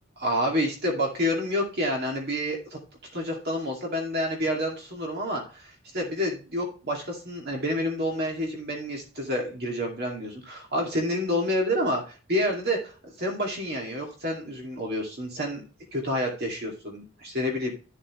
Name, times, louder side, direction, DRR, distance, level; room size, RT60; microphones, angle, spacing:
voice 1, 0.2-2.8 3.1-15.6 15.9-17.7, equal, 50° right, 0 dB, 2.4 m, -29 dB
12.5 x 7.2 x 3.1 m, 0.35 s
head